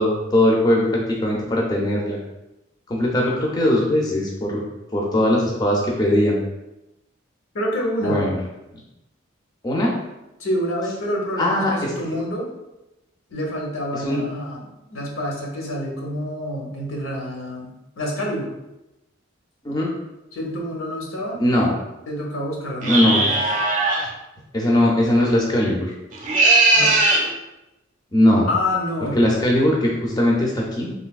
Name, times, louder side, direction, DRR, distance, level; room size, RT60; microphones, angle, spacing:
voice 1, 0.0-2.2 2.9-4.6 4.9-6.4 8.0-8.4 9.6-10.0 11.4-12.2 14.0-14.2 19.6-19.9 21.4-21.7 22.9-23.2 24.5-25.9 28.1-28.5 29.2-30.9, left 1 dB, 20° left, -2 dB, 0.3 m, -20 dB
voice 2, 7.5-8.3 10.4-12.5 13.3-18.6 20.3-21.5 22.1-23.3 26.7-27.0 28.5-29.2, left 1 dB, 85° left, -1 dB, 0.8 m, -27 dB
sound 1, 22.8-24.1 26.1-27.3, right 2 dB, 40° right, 0.5 m, -18 dB
3.2 x 2.5 x 2.3 m, 0.94 s
head